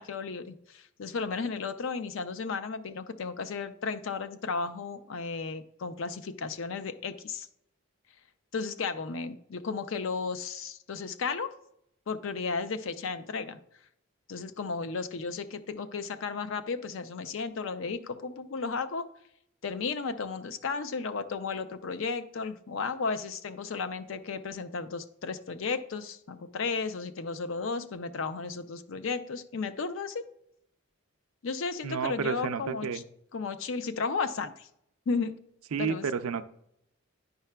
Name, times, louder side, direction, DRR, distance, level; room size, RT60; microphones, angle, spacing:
voice 1, 0.0-7.5 8.5-11.5 12.1-13.6 14.3-19.1 19.6-30.2 31.4-33.0 33.3-34.7 35.1-35.4 35.8-36.1, left 4 dB, 65° left, 11 dB, 0.5 m, -34 dB
voice 2, 31.8-33.0 35.7-36.4, right 6 dB, 85° right, 10 dB, 0.4 m, -31 dB
9.4 x 5.6 x 2.2 m, 0.75 s
head